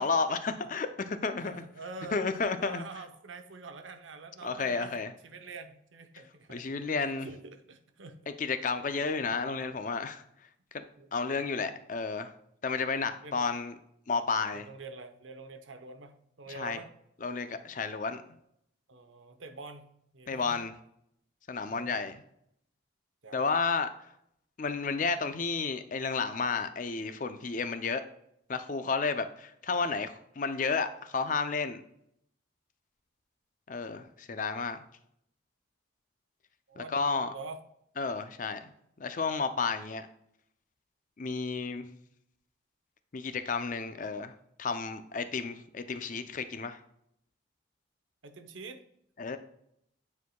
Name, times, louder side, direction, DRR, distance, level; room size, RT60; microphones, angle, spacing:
voice 1, 0.0-1.7 2.1-2.8 4.4-5.1 6.5-7.3 8.4-10.2 11.1-12.3 12.6-13.7 14.1-14.6 16.6-16.8 17.2-18.2 20.3-20.7 21.5-22.2 23.3-23.9 24.6-28.0 28.5-31.8 33.7-34.8 36.8-37.3 38.0-38.7 39.0-40.1 41.2-41.8 43.1-44.3 44.6-46.8 49.2-49.4, left 4 dB, 40° left, 10 dB, 0.5 m, -32 dB
voice 2, 1.4-2.2 2.6-8.2 11.0-11.1 11.6-11.7 13.2-13.4 14.5-16.9 18.9-19.8 20.1-20.6 21.7-22.2 23.2-23.6 36.7-37.0 37.3-37.6 38.4-38.5 48.2-48.8, right 3 dB, 75° right, 7 dB, 0.8 m, -46 dB
9.5 x 4.6 x 2.2 m, 0.72 s
head